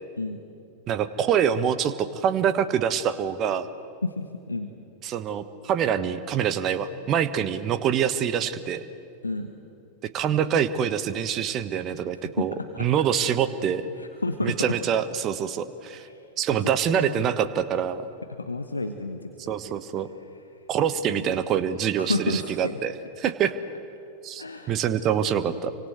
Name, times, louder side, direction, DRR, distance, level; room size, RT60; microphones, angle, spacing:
voice 1, 0.9-3.7 5.0-8.8 10.1-13.8 14.4-16.1 16.4-18.0 19.5-20.1 20.7-22.9 23.2-23.5 24.2-25.7, right 8 dB, 35° right, 12 dB, 1.3 m, -25 dB
voice 2, 4.0-4.7 9.2-9.5 12.7-12.9 14.0-14.7 16.0-16.3 16.9-17.2 18.3-19.2 21.1-21.3 22.0-22.8 24.4-24.8, left 3 dB, 80° left, 7 dB, 1.3 m, -30 dB
29.0 x 24.5 x 8.1 m, 2.6 s
figure-of-eight pair, 90°, 0 cm